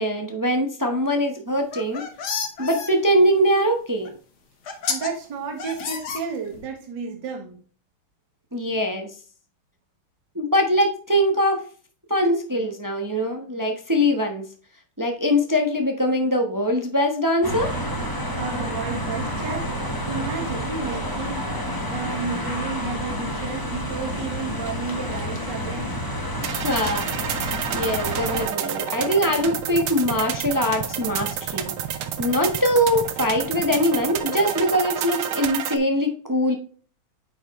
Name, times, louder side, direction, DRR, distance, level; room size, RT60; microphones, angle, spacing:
voice 1, 0.0-2.0 2.6-4.1 8.5-9.1 10.3-11.6 12.1-14.4 15.0-17.7 26.6-31.7 32.2-36.5, equal, 25° right, 4 dB, 0.4 m, -22 dB
sound 1, 1.6-2.9 4.1-4.2 4.7-5.1 5.6-6.7, left 6 dB, 55° left, 1.6 m, -30 dB
voice 2, 4.9-7.6 18.3-19.7 20.1-21.5 21.9-25.9, right 5 dB, 55° right, 1 dB, 2.2 m, -32 dB
sound 2, 17.4-28.5, equal, 15° left, 1.0 m, -29 dB
sound 3, 26.4-35.8, right 9 dB, 75° right, 1.7 m, -29 dB
9.1 x 5.1 x 3.0 m, 0.40 s
omnidirectional pair, 2.4 m